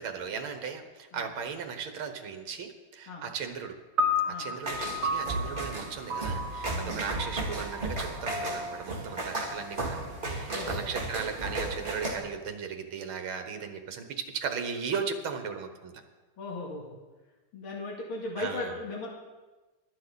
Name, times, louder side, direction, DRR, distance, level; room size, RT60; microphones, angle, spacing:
voice 1, 0.0-3.8 4.4-16.0 18.4-18.8, right 6 dB, 75° right, 6 dB, 2.1 m, -37 dB
sound 1, 4.0-10.4, left 2 dB, 55° right, 0.7 m, -34 dB
sound 2, 4.6-12.2, right 2 dB, 25° right, 2.2 m, -35 dB
voice 2, 16.4-16.9 17.5-19.1, left 2 dB, 75° left, -2 dB, 3.1 m, -37 dB
23.5 x 8.7 x 4.1 m, 1.2 s
omnidirectional pair, 2.3 m